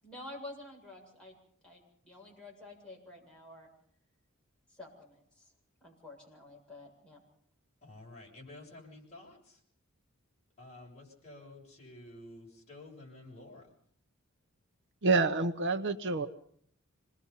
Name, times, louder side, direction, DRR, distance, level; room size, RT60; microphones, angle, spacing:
voice 1, 0.0-1.3 1.6-3.7 4.7-5.5 5.8-7.2, left 2 dB, 5° left, -3 dB, 7.6 m, -49 dB
voice 2, 7.8-9.6 10.6-13.7, left 2 dB, 35° left, -2 dB, 7.3 m, -51 dB
voice 3, 15.0-16.3, right 3 dB, 60° right, 9 dB, 1.0 m, -27 dB
27.0 x 20.5 x 5.7 m, 0.62 s
head